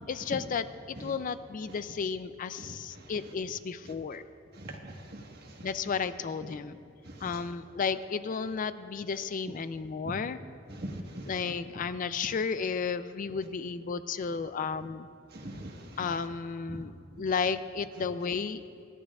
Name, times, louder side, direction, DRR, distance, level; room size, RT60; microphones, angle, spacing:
voice 1, 0.1-4.2 5.6-6.8 7.2-10.4 11.3-15.1 16.0-16.9 17.2-18.6, left 5 dB, 45° left, 12 dB, 0.4 m, -33 dB
voice 2, 4.6-5.7 7.0-7.3 10.0-10.1 10.7-11.3 15.3-16.1 16.7-16.8, right 1 dB, 55° right, 1 dB, 1.4 m, -42 dB
25.5 x 11.0 x 2.4 m, 2.6 s
head